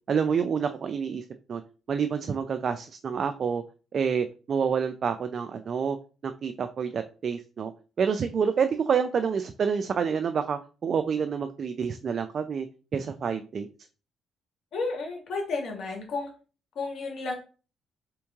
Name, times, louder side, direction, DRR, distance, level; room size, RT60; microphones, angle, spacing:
voice 1, 0.1-1.6 1.9-3.6 3.9-6.0 6.2-7.7 8.0-12.7 12.9-13.7, right 6 dB, 50° right, 8 dB, 0.3 m, -28 dB
voice 2, 14.7-16.3 16.7-17.3, left 3 dB, 70° left, 2 dB, 1.4 m, -32 dB
3.5 x 3.0 x 3.5 m, 0.35 s
cardioid pair, 90°, 0 cm